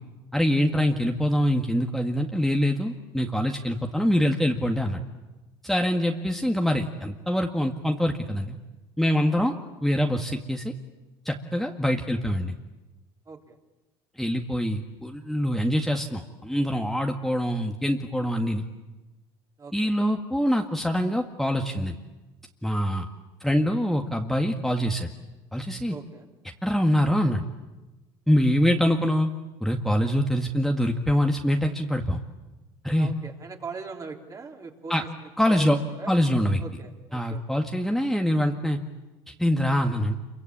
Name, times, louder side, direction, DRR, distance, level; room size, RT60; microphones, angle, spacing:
voice 1, 0.3-5.0 5.6-8.6 9.0-9.6 9.8-10.7 11.3-12.5 14.2-18.6 19.7-22.0 22.6-23.1 23.4-25.1 25.5-26.0 26.6-27.4 28.3-29.3 29.6-32.2 32.8-33.1 34.9-35.0 35.4-35.8 36.1-36.6 37.1-38.8 39.3-40.2, equal, ahead, 2 dB, 1.9 m, -24 dB
voice 2, 25.9-26.3 33.0-36.1 36.6-37.4, right 4 dB, 30° right, 2 dB, 3.7 m, -41 dB
27.0 x 24.0 x 8.7 m, 1.1 s
supercardioid pair, 85°, 12 cm